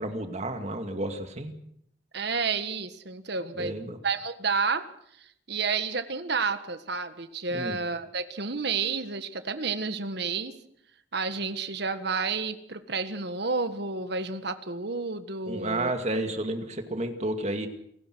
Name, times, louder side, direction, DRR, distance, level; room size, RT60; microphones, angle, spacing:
voice 1, 0.0-1.5 3.5-4.0 7.5-7.8 15.5-17.7, right 1 dB, 35° right, 6 dB, 2.3 m, -31 dB
voice 2, 2.1-3.7 4.0-4.9 5.2-10.5 11.1-15.9, right 4 dB, 60° right, 10 dB, 1.6 m, -30 dB
28.5 x 17.5 x 6.3 m, 0.72 s
head